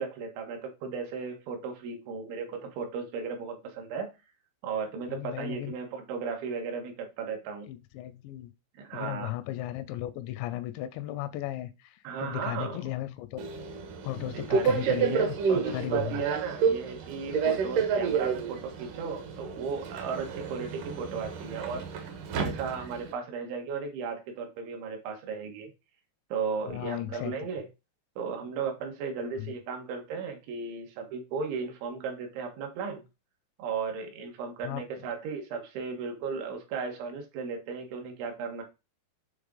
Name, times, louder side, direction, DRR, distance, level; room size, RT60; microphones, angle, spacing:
voice 1, 0.0-4.1 4.6-7.7 8.8-9.3 12.0-12.8 14.1-25.7 26.3-27.7 28.2-33.1 33.6-38.6, right 5 dB, 85° right, 3.8 m, -35 dB
voice 2, 5.1-5.7 7.7-8.5 8.9-13.5 14.0-16.2 26.7-27.3 29.4-29.5 34.6-34.8, left 14 dB, 85° left, 2.8 m, -35 dB
Subway metro underground, 13.4-23.1, right 6 dB, 70° right, 2.1 m, -30 dB
8.1 x 3.6 x 3.8 m
omnidirectional pair, 5.1 m